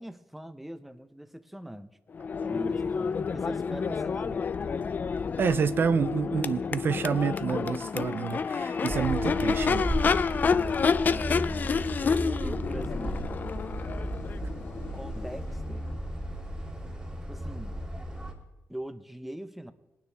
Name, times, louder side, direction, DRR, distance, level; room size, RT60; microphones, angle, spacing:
voice 1, 0.0-1.9 2.4-4.8 10.5-11.7 12.0-13.3 14.9-15.9 17.3-17.7 18.7-19.7, right 1 dB, 5° right, 0.6 m, -42 dB
Crowd / Race car auto racing / Accelerating revving vroom, 2.1-16.0, left 5 dB, 40° left, 0.4 m, -29 dB
voice 2, 5.4-10.4, right 6 dB, 50° right, 0.4 m, -29 dB
sound 1, 8.9-18.3, right 1 dB, 20° right, 2.6 m, -34 dB
20.5 x 9.5 x 3.4 m
wide cardioid pair, 135°, 5 cm